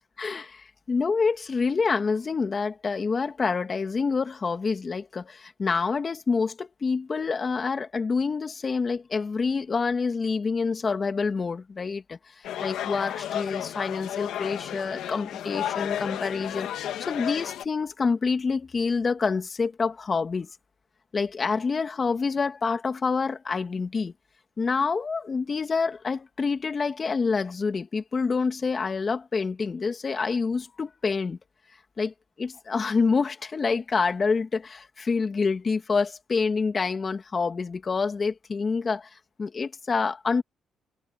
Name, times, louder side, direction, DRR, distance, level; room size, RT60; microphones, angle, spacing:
voice 1, 0.2-12.2 12.6-16.7 17.0-20.5 21.1-24.1 24.6-31.4 32.0-39.1 39.4-40.4, left 4 dB, 35° left, 2.5 m, -27 dB
sound 1, 12.4-17.7, left 11 dB, 80° left, 1.9 m, -33 dB
cardioid pair, 90°, 0 cm